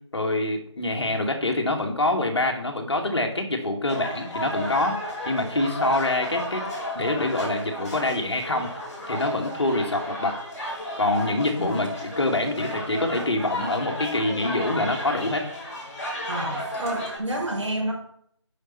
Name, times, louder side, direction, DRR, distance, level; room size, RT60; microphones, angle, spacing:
voice 1, 0.1-6.7 6.9-8.7 9.1-10.3 11.0-15.4, left 2 dB, 60° left, 2 dB, 2.3 m, -25 dB
sound 1, 3.9-17.2, equal, 30° left, 5.0 m, -33 dB
voice 2, 16.3-17.9, right 1 dB, 75° right, 0 dB, 4.5 m, -29 dB
10.0 x 5.5 x 6.0 m, 0.66 s
figure-of-eight pair, 170°, 16 cm